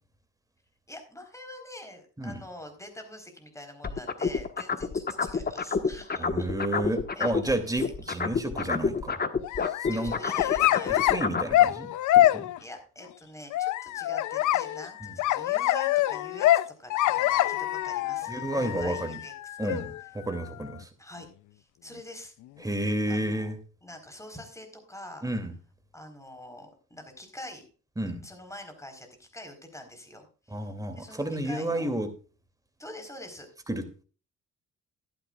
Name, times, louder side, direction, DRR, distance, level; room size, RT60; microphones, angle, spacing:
voice 1, 0.9-6.5 7.2-8.1 9.9-11.0 12.6-19.8 21.0-21.3 21.5-22.3 23.1-23.5 23.8-25.2 25.9-27.6 28.2-31.9 32.8-33.5, left 1 dB, 10° left, 6 dB, 4.3 m, -45 dB
sound 1, 3.8-7.5 7.8-11.5, left 5 dB, 30° left, 1.4 m, -28 dB
voice 2, 6.2-9.2 9.6-10.1 10.9-11.9 12.1-12.5 18.3-19.2 19.6-20.9 22.6-23.6 25.2-25.5 28.0-28.2 30.5-32.1 33.7-34.0, right 1 dB, 10° right, 7 dB, 2.7 m, -31 dB
sound 2, 9.4-11.2 11.5-12.6 13.5-20.8, left 14 dB, 75° left, 0.6 m, -25 dB
14.0 x 11.5 x 2.4 m, 0.37 s
cardioid pair, 90°, 30 cm